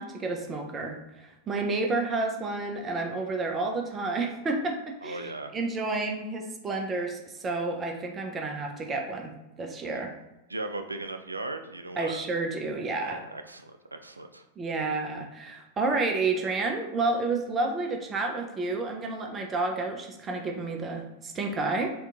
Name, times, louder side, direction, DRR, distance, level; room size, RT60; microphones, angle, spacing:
voice 1, 0.0-10.1 12.0-13.2 14.6-21.9, right 3 dB, 20° right, 3 dB, 0.6 m, -30 dB
voice 2, 5.0-5.5 9.9-10.0 10.5-12.2 13.0-14.4, right 2 dB, 80° right, 7 dB, 0.4 m, -37 dB
3.6 x 2.8 x 3.5 m, 0.99 s
figure-of-eight pair, 90°, 0 cm